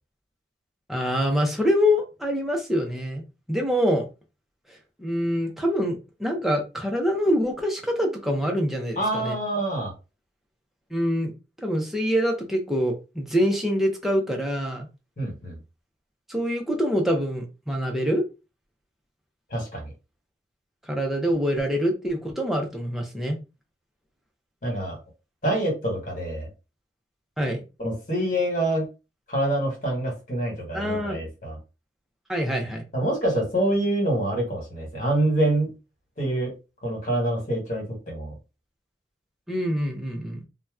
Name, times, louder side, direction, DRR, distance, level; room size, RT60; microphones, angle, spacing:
voice 1, 0.9-3.2 3.5-4.0 4.7-9.3 10.9-11.3 11.6-14.9 16.3-18.2 20.8-23.4 27.4-27.6 30.7-31.2 32.3-32.8 39.5-40.4, equal, ahead, 0.6 m, -25 dB
voice 2, 9.0-9.9 15.2-15.6 19.5-19.9 24.6-25.0 25.4-26.5 27.8-28.9 29.3-31.6 32.9-35.7 36.2-36.5 36.8-38.3, right 1 dB, 45° left, 1.5 m, -26 dB
2.8 x 2.2 x 3.5 m
head